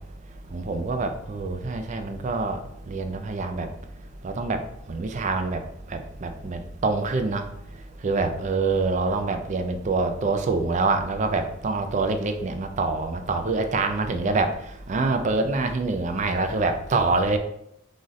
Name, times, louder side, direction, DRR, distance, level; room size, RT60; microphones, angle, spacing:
voice 1, 0.5-2.6 2.9-3.7 4.2-4.6 4.9-5.6 5.9-7.4 8.0-14.5 14.9-17.4, right 3 dB, 35° right, 0.4 m, -25 dB
4.0 x 2.4 x 3.1 m
head